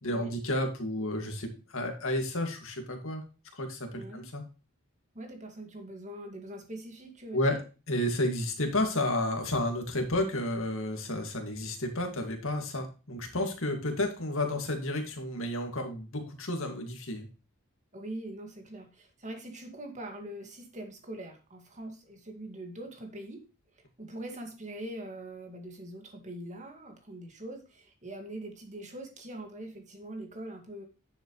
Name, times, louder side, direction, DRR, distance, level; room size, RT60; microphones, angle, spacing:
voice 1, 0.0-3.2 3.5-4.4 7.3-7.6 7.9-17.3, left 1 dB, 60° left, 4 dB, 2.1 m, -31 dB
voice 2, 3.9-4.3 5.1-7.6 17.9-23.4 23.8-30.8, right 1 dB, 35° right, 4 dB, 2.1 m, -43 dB
10.0 x 7.3 x 3.2 m, 0.32 s
head